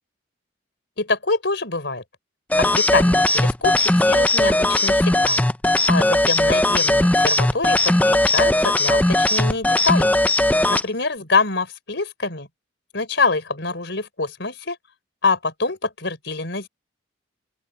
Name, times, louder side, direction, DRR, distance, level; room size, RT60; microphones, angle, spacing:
voice 1, 1.0-2.0 2.6-5.4 5.9-10.1 10.7-12.5 12.9-14.8 15.2-16.7, left 3 dB, 60° left, 4.5 m, -25 dB
sound 1, 2.5-10.8, left 1 dB, 5° left, 0.4 m, -18 dB
open air
head